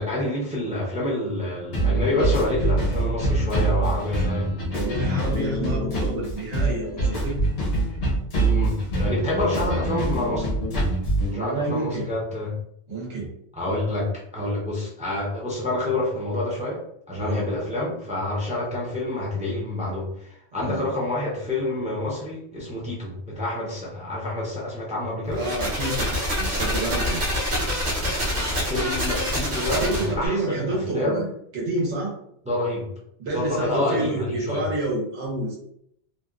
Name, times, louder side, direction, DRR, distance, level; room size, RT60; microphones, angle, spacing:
voice 1, 0.0-4.5 8.4-10.5 11.3-12.5 13.5-16.8 17.1-25.4 28.6-31.2 32.5-32.9 33.3-34.6, left 1 dB, 10° right, -4 dB, 0.4 m, -27 dB
sound 1, 1.7-11.3, right 2 dB, 65° left, 1.0 m, -24 dB
voice 2, 4.7-7.4 11.2-12.0 12.9-13.3 17.2-17.5 20.6-20.8 25.4-27.2 29.8-31.3 31.5-32.1 33.2-35.6, right 2 dB, 85° right, -3 dB, 1.2 m, -28 dB
sound 2, 25.3-30.3, equal, 55° right, 1.0 m, -26 dB
2.8 x 2.2 x 2.3 m, 0.71 s
omnidirectional pair, 1.1 m